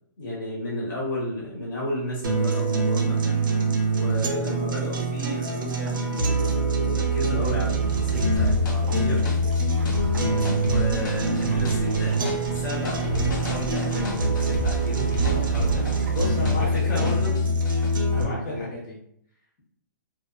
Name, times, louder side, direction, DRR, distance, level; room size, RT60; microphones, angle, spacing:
voice 1, 0.2-3.2 3.9-9.2 10.6-16.0 16.6-17.4 18.1-18.7, left 1 dB, 90° left, -5 dB, 1.2 m, -32 dB
sound 1, 2.2-18.2, right 2 dB, 85° right, 0.6 m, -24 dB
sound 2, 7.4-16.8, equal, 45° right, 0.5 m, -36 dB
sound 3, 8.4-16.8 17.0-17.9, right 1 dB, 70° left, 0.8 m, -30 dB
voice 2, 16.1-17.3 18.1-19.0, left 1 dB, 20° left, -4 dB, 0.7 m, -33 dB
2.4 x 2.3 x 2.4 m, 0.70 s
hypercardioid pair, 175°, 11 cm